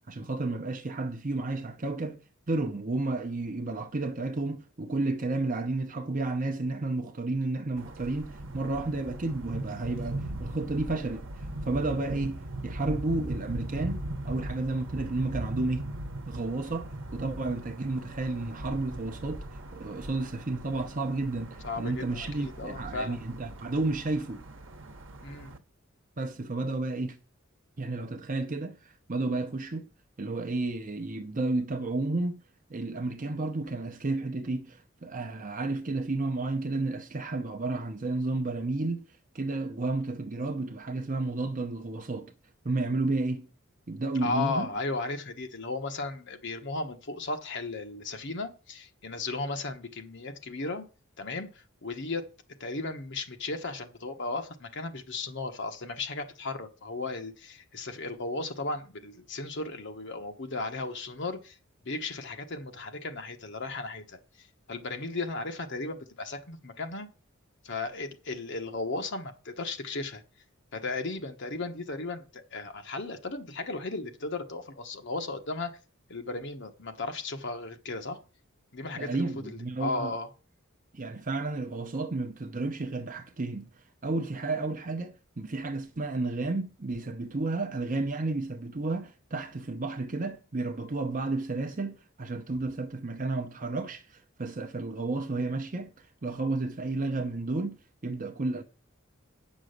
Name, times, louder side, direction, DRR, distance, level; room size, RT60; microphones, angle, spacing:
voice 1, 0.1-2.2 2.5-15.9 16.3-19.4 19.7-24.4 26.2-27.2 27.8-29.9 30.2-32.4 32.7-39.0 39.3-42.3 42.6-43.5 43.9-44.7 79.0-80.2 80.9-83.6 84.0-95.9 96.2-97.7 98.0-98.6, right 2 dB, 40° right, 0.7 m, -32 dB
sound 1, 7.8-25.6, right 1 dB, 65° right, 1.1 m, -39 dB
voice 2, 21.6-23.2 25.2-25.5 44.2-50.9 51.2-52.2 52.6-61.6 61.8-67.1 67.6-70.2 70.7-75.8 76.1-78.2 78.7-80.3, left 3 dB, 60° left, 1.2 m, -35 dB
8.8 x 6.2 x 6.6 m
head